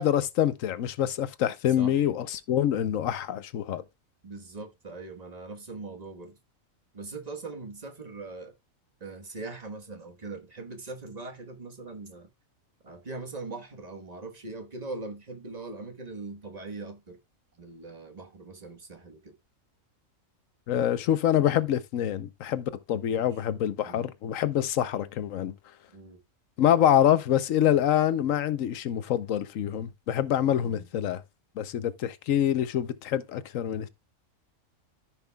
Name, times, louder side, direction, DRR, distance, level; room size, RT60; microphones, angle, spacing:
voice 1, 0.0-3.8 20.7-25.5 26.6-31.2 31.6-33.9, left 10 dB, 75° left, 1.1 m, -26 dB
voice 2, 1.7-2.1 4.2-6.4 6.9-8.6 9.0-12.3 12.8-17.2 17.6-19.3 23.0-23.3 23.8-24.1 25.9-26.2 30.6-30.9, right 3 dB, 30° right, 1.3 m, -41 dB
14.5 x 5.9 x 2.3 m
omnidirectional pair, 1.4 m